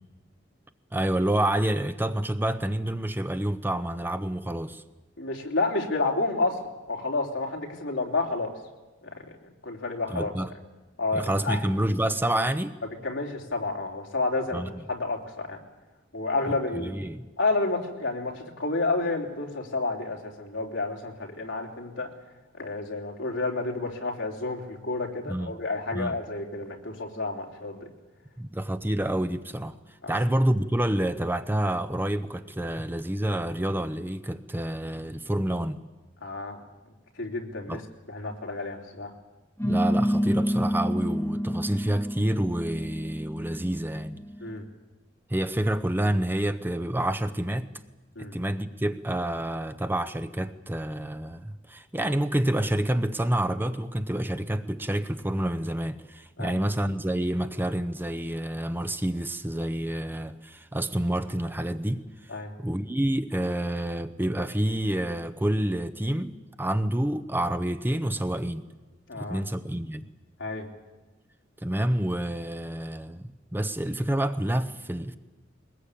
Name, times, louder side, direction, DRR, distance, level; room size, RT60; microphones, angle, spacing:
voice 1, 0.9-4.8 10.1-10.5 11.1-12.8 14.5-14.7 16.5-17.2 25.3-25.5 25.9-26.2 28.4-29.8 30.1-35.8 37.7-37.8 39.6-44.2 45.3-47.7 48.2-62.0 62.6-68.6 69.1-70.1 71.6-75.2, right 1 dB, 10° right, 0.7 m, -28 dB
voice 2, 5.2-6.6 6.9-8.5 9.0-9.3 9.6-10.3 11.0-11.6 13.0-14.6 14.9-15.6 16.1-16.9 17.4-22.1 22.6-27.9 30.0-30.1 36.2-36.6 37.2-37.8 38.1-39.1 44.4-44.6 48.2-48.3 56.4-56.6 62.3-62.5 69.1-69.4 70.4-70.7, left 3 dB, 70° left, 3.5 m, -30 dB
sound 1, 39.6-44.5, equal, 10° left, 2.3 m, -28 dB
22.0 x 20.0 x 8.5 m
head